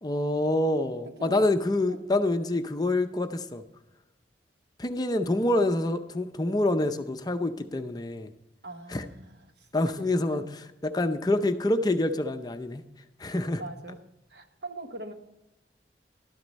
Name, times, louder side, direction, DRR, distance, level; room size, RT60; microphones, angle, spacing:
voice 1, 0.0-3.6 4.8-8.3 8.9-9.0 9.7-12.8 13.2-13.6, left 1 dB, 20° left, 8 dB, 0.6 m, -26 dB
voice 2, 8.6-9.7 10.0-10.4 13.6-14.0 14.3-15.1, right 2 dB, 70° right, 6 dB, 1.2 m, -42 dB
12.0 x 9.5 x 4.1 m, 0.96 s
head